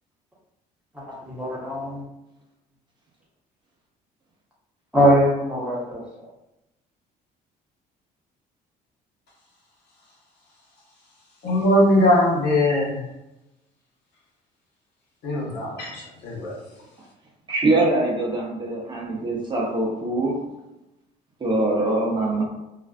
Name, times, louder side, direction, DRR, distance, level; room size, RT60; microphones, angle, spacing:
voice 1, 0.9-2.1 4.9-6.3, equal, 5° right, -6 dB, 0.9 m, -22 dB
voice 2, 11.4-13.0 15.2-16.6, left 1 dB, 75° left, -4 dB, 1.1 m, -20 dB
voice 3, 17.5-20.4 21.4-22.4, right 2 dB, 25° right, -3 dB, 0.7 m, -23 dB
2.4 x 2.3 x 2.3 m, 0.94 s
cardioid pair, 110°, 17 cm